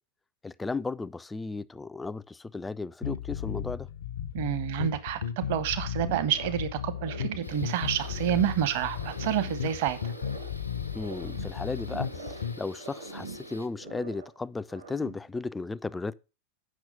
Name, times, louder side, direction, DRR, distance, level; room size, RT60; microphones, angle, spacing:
voice 1, 0.4-3.9 10.9-16.1, left 3 dB, 10° left, 0.3 m, -35 dB
sound 1, 3.0-12.6, left 8 dB, 65° left, 0.6 m, -35 dB
voice 2, 4.3-10.0, right 10 dB, 50° right, 0.9 m, -29 dB
sound 2, 6.0-6.7 6.9-8.6 8.9-10.6 10.9-12.5 12.8-14.4 14.7-15.3, right 4 dB, 70° right, 1.3 m, -44 dB
sound 3, 7.4-13.7, left 2 dB, 90° left, 1.0 m, -46 dB
8.5 x 6.0 x 5.1 m
figure-of-eight pair, 90°, 0 cm